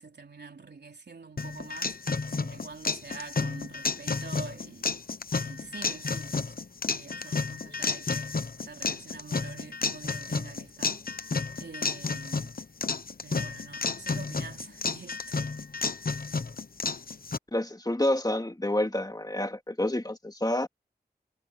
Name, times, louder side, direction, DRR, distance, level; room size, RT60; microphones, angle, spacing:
voice 1, 0.0-2.0 2.4-4.9 5.5-6.6 6.8-11.1 11.6-12.5 13.2-15.5, right 4 dB, 90° right, 3.8 m, -46 dB
sound 1, 1.4-17.4, left 4 dB, 60° left, 0.9 m, -31 dB
voice 2, 17.5-20.7, left 1 dB, 25° left, 2.5 m, -28 dB
wide cardioid pair, 45°, 17 cm